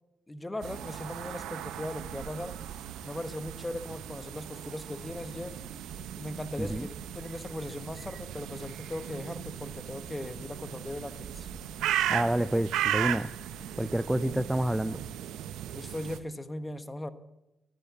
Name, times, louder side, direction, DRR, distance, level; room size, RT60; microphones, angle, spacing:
voice 1, 0.3-2.5 3.0-5.9 6.1-11.5 15.7-17.1, left 1 dB, 20° left, 11 dB, 1.3 m, -38 dB
sound 1, 0.6-16.2, right 11 dB, 85° right, 0.7 m, -37 dB
sound 2, 5.0-15.0, left 6 dB, 65° left, 6.1 m, -54 dB
voice 2, 12.1-13.3 13.8-15.0, right 1 dB, 10° right, 16 dB, 0.5 m, -28 dB
13.5 x 10.0 x 8.1 m, 0.94 s
supercardioid pair, 55°, 0 cm